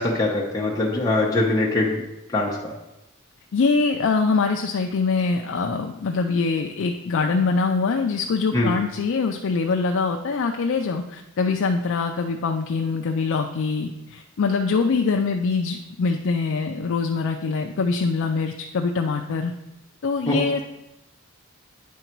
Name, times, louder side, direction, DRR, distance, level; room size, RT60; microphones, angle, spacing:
voice 1, 0.0-2.0 2.3-2.7 8.5-8.7 20.3-20.4, left 2 dB, 15° left, -4 dB, 0.9 m, -22 dB
voice 2, 3.5-19.5 20.0-20.6, left 4 dB, 60° left, 4 dB, 0.4 m, -23 dB
9.3 x 3.9 x 4.5 m, 0.92 s
head